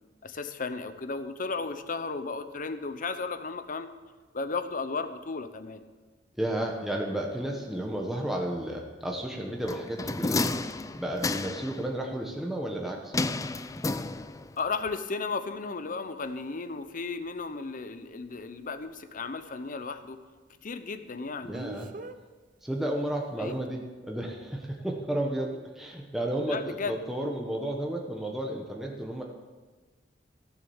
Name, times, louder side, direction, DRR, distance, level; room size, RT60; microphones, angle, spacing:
voice 1, 0.2-3.9 4.3-5.8 14.6-20.2 20.6-21.6 23.4-23.5 26.5-26.9, left 4 dB, 45° left, 9 dB, 0.8 m, -34 dB
voice 2, 6.4-10.6 11.0-13.1 21.4-21.9 22.6-29.2, right 1 dB, ahead, 0 dB, 1.1 m, -32 dB
sound 1, 9.7-11.8 13.1-14.6 14.9-15.0, left 3 dB, 20° left, 0.4 m, -31 dB
Speech, 16.2-16.3 21.5-22.2 23.4-23.7, right 2 dB, 45° right, 0.7 m, -40 dB
15.5 x 7.2 x 7.1 m, 1.3 s
head